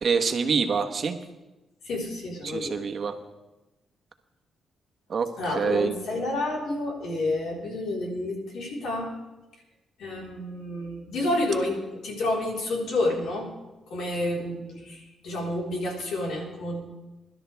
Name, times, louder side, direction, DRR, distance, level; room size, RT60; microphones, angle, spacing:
voice 1, 0.0-1.2 2.4-3.1 5.1-5.3 5.6-5.9, right 5 dB, 55° right, 6 dB, 1.3 m, -25 dB
voice 2, 1.8-2.8 5.4-9.1 10.0-13.5 13.9-16.8, left 2 dB, 80° left, -2 dB, 4.4 m, -29 dB
21.5 x 12.0 x 3.6 m, 1.1 s
cardioid pair, 80°, 0 cm